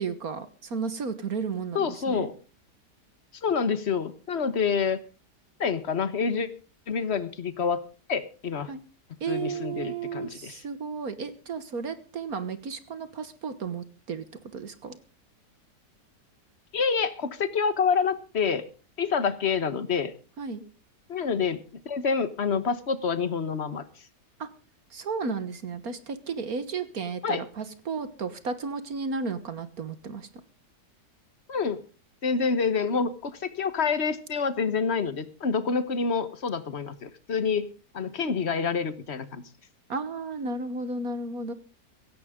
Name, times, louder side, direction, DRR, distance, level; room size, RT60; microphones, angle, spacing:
voice 1, 0.0-2.3 8.7-8.8 9.2-14.3 14.5-15.0 20.4-20.6 24.4-24.5 24.9-30.3 39.9-41.5, right 4 dB, 60° right, 12 dB, 1.7 m, -33 dB
voice 2, 1.7-2.3 3.4-5.0 5.6-6.5 6.9-7.8 8.1-8.7 9.3-10.6 16.7-18.7 19.0-20.1 21.1-23.8 27.2-27.4 31.5-31.8 32.2-37.7 37.9-39.4, left 5 dB, 40° left, 13 dB, 1.4 m, -27 dB
16.5 x 16.5 x 3.7 m, 0.35 s
omnidirectional pair, 1.8 m